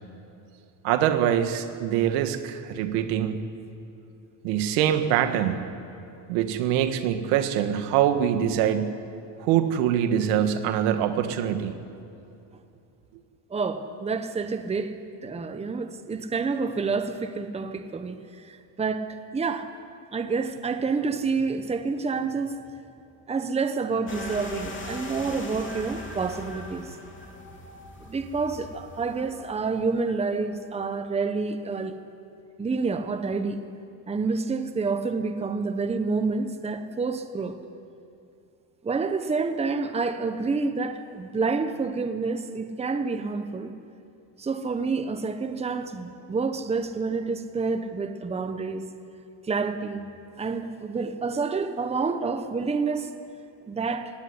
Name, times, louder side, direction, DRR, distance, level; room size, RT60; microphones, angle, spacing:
voice 1, 0.8-3.4 4.4-5.6 6.3-9.0 9.4-11.7, right 10 dB, 85° right, 8 dB, 1.9 m, -24 dB
voice 2, 13.5-14.9 15.2-18.2 18.5-19.7 20.1-22.5 23.3-26.9 28.1-32.0 32.6-33.6 34.1-37.6 38.8-43.7 44.4-48.9 49.5-50.0 50.4-53.1 53.7-54.1, right 4 dB, 15° right, 8 dB, 1.0 m, -28 dB
sound 1, 24.1-30.3, left 2 dB, 25° left, 3.1 m, -40 dB
18.0 x 16.0 x 9.8 m, 2.7 s
cardioid pair, 135°, 48 cm